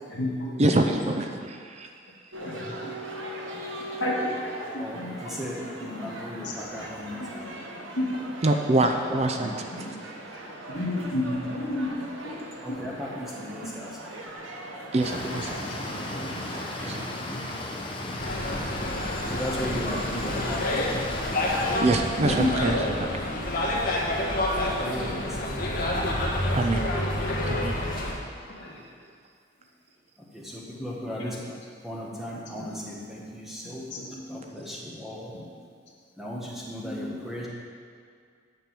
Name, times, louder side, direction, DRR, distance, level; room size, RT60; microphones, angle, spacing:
voice 1, 0.1-1.1 2.4-3.0 4.0-5.4 5.8-5.9 6.4-6.5 7.1-7.3 8.0-8.1 9.4-10.0 10.7-12.9 15.8-16.5 17.5-17.7 18.2-18.3 18.8-19.6 19.9-20.9 21.4-21.8 22.1-23.7 28.5-28.8 32.5-33.0 33.6-34.7 35.3-35.5 36.8-37.2, left 1 dB, 70° left, -4 dB, 2.0 m, -33 dB
voice 2, 0.6-1.2 1.6-1.9 8.4-9.5 14.9-15.5 16.5-17.0 21.8-23.1 26.5-26.8 27.4-27.7, right 2 dB, 35° right, 4 dB, 0.5 m, -25 dB
sound 1, 2.3-17.1, right 1 dB, 85° right, 1.2 m, -40 dB
voice 3, 4.8-7.8 8.8-9.6 12.6-13.9 17.0-17.4 19.3-20.7 22.2-22.4 24.5-25.7 30.3-31.6 31.8-35.3 36.2-37.5, equal, ahead, -5 dB, 1.5 m, -37 dB
sound 2, 15.0-21.8, left 1 dB, 25° left, 0.9 m, -35 dB
sound 3, 18.2-28.1, left 1 dB, 45° left, 1.7 m, -28 dB
8.9 x 5.5 x 7.5 m, 2.2 s
head